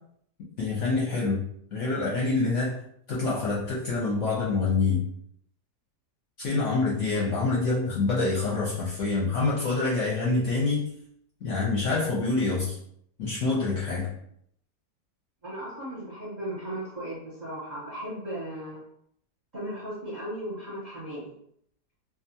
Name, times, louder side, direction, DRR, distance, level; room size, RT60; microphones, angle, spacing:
voice 1, 0.6-1.4 1.7-2.8 3.1-5.0 6.4-10.8 11.4-12.8 13.2-14.1, left 3 dB, 60° left, -6 dB, 0.9 m, -26 dB
voice 2, 15.4-18.8 19.5-21.3, right 1 dB, 35° right, -8 dB, 0.8 m, -36 dB
2.6 x 2.3 x 2.7 m, 0.67 s
omnidirectional pair, 1.7 m